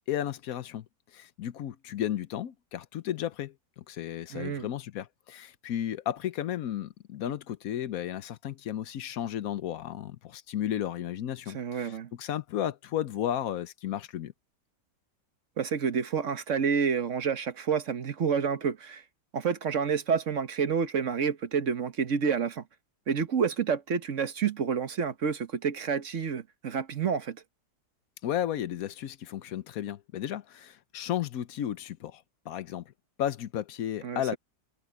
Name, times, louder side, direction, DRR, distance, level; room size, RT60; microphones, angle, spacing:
voice 1, 0.1-0.9 1.1-14.3 28.2-32.8 33.2-34.4, left 11 dB, 65° left, 1.1 m, -34 dB
voice 2, 4.3-4.7 11.5-12.1 15.6-19.0 19.3-22.6 23.1-27.4 34.0-34.4, right 6 dB, 50° right, 1.4 m, -29 dB
omnidirectional pair, 1.8 m